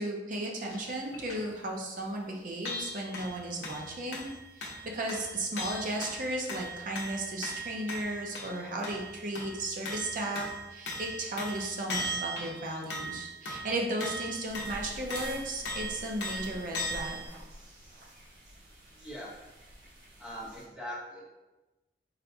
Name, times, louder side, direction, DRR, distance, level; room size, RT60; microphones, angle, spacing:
voice 1, 0.0-4.3 4.6-17.2, right 1 dB, 50° right, 0 dB, 0.5 m, -35 dB
sound 1, 0.7-1.4 2.0-2.1 2.3-2.4 2.6-17.3, equal, 70° left, 0.7 m, -39 dB
sound 2, 14.4-20.6, equal, 65° right, 0.9 m, -48 dB
voice 2, 19.0-19.3 20.2-21.2, equal, 5° right, -6 dB, 0.8 m, -41 dB
4.0 x 2.2 x 2.6 m, 1.1 s
head